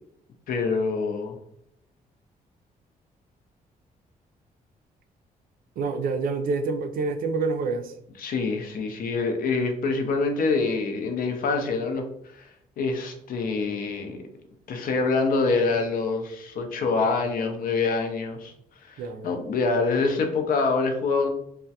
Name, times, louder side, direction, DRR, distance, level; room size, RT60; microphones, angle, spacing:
voice 1, 0.5-1.4 8.2-12.0 12.4-12.5 12.8-14.2 14.7-18.5 18.8-21.3, left 4 dB, 65° left, 0.5 m, -25 dB
voice 2, 5.8-7.9 19.0-19.4, right 4 dB, 70° right, 0.4 m, -27 dB
2.2 x 2.1 x 2.7 m
cardioid pair, 90°, 15 cm